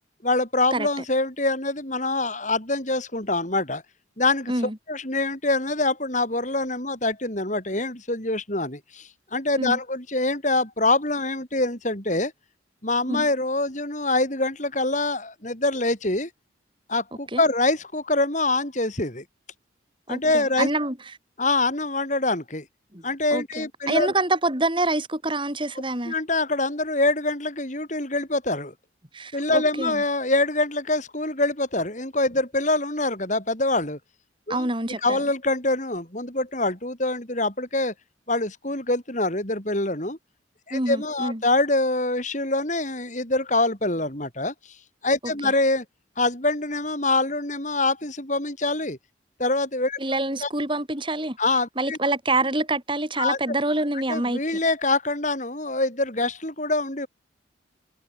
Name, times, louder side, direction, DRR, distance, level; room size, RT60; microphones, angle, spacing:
voice 1, 0.2-3.8 4.2-4.5 4.9-12.3 12.8-16.3 16.9-19.2 20.1-20.7 21.4-22.6 23.0-24.1 26.1-28.7 29.3-34.0 34.5-34.7 35.0-37.9 38.3-40.2 40.7-44.5 45.0-45.8 46.2-49.0 49.4-50.0 50.4-50.5 51.4-52.0 53.2-53.6 54.1-57.1, left 2 dB, 40° left, 5.4 m, -25 dB
voice 2, 20.1-20.9 22.9-23.0 23.3-26.1 29.1-30.0 34.5-35.2 40.7-41.4 45.4-45.5 50.0-51.4 51.8-54.6, right 2 dB, 25° right, 6.7 m, -26 dB
head